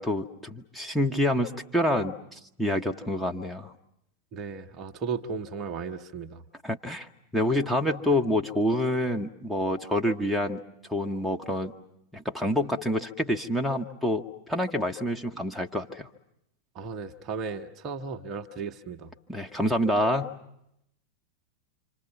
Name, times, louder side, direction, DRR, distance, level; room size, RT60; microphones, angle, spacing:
voice 1, 0.0-2.2 2.6-3.7 6.6-7.1 7.3-10.6 10.9-11.7 12.1-16.1 19.3-20.4, left 1 dB, ahead, 2 dB, 1.3 m, -27 dB
voice 2, 4.3-6.4 16.7-19.1, right 5 dB, 30° right, 6 dB, 1.1 m, -35 dB
27.0 x 26.5 x 7.3 m, 0.79 s
figure-of-eight pair, 90°, 0 cm